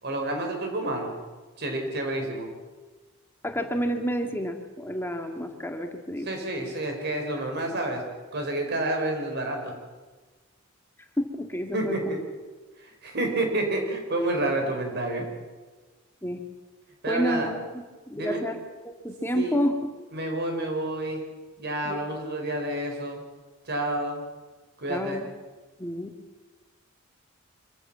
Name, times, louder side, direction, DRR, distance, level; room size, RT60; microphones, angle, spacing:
voice 1, 0.0-1.1 1.6-2.5 6.2-8.1 8.3-9.8 11.7-12.3 12.8-15.3 17.0-17.5 18.1-18.4 19.3-19.6 20.1-21.3 21.6-23.2 23.6-24.3 24.8-25.2, right 1 dB, 55° right, 3 dB, 4.4 m, -29 dB
voice 2, 3.4-6.3 11.2-12.0 16.2-16.4 17.1-18.6 18.9-19.7 21.9-22.0 24.9-25.3 25.8-26.1, equal, 10° left, 4 dB, 1.8 m, -29 dB
24.5 x 14.5 x 7.4 m, 1.3 s
head